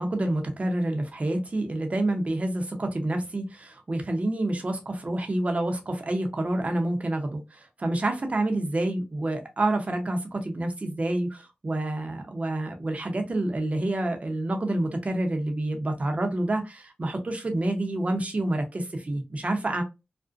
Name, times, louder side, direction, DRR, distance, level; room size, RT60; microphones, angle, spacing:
voice 1, 0.0-19.8, right 1 dB, 45° right, 0.7 m, -28 dB
2.5 x 2.1 x 2.4 m
cardioid pair, 45°, 3 cm